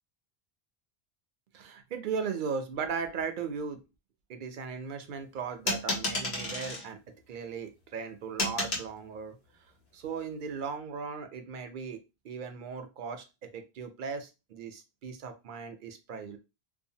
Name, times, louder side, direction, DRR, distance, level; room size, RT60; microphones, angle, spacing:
voice 1, 1.5-3.8 4.3-7.0 7.3-9.4 9.9-16.4, right 5 dB, 60° right, 7 dB, 0.6 m, -37 dB
sound 1, 5.7-6.9 8.4-8.9, left 2 dB, 85° left, 1.2 m, -31 dB
2.7 x 2.2 x 2.7 m, 0.27 s
omnidirectional pair, 1.0 m